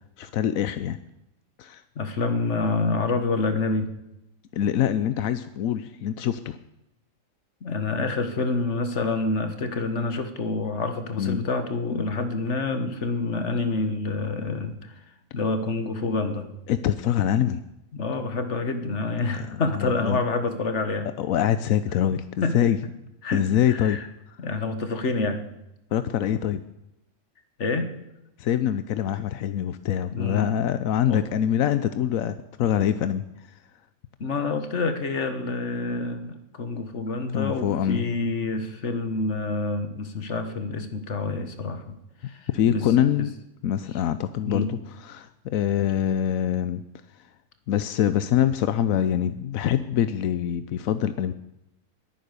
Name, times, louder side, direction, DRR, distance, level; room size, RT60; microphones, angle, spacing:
voice 1, 0.2-1.0 1.6-1.8 4.5-6.6 11.2-11.5 16.7-17.6 19.7-20.2 21.2-22.8 23.3-24.0 24.3-24.4 25.9-26.6 28.4-33.2 37.3-38.0 42.5-43.3 43.6-46.8 47.7-51.3, left 10 dB, 90° left, 12 dB, 1.1 m, -24 dB
voice 2, 2.0-3.9 7.6-14.9 15.3-16.5 17.9-21.1 22.4-22.6 23.2-24.1 24.4-25.5 27.6-27.9 30.1-30.5 31.1-31.2 34.2-41.9 42.2-42.8 43.2-43.3 44.5-44.7, left 3 dB, 60° left, 9 dB, 1.9 m, -27 dB
20.5 x 9.5 x 6.8 m, 0.89 s
omnidirectional pair, 1.4 m